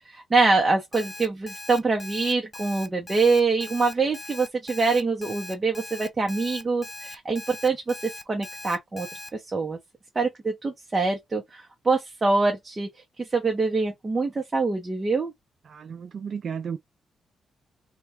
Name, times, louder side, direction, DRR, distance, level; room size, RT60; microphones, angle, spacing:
voice 1, 0.0-9.1 9.3-9.8 10.1-12.9 13.2-15.3, right 3 dB, 20° right, 0.9 m, -25 dB
Alarm, 0.9-9.3, left 2 dB, 20° left, 0.6 m, -40 dB
voice 2, 15.7-16.8, right 6 dB, 45° right, 0.4 m, -33 dB
3.3 x 2.4 x 4.4 m
cardioid pair, 145°, 0 cm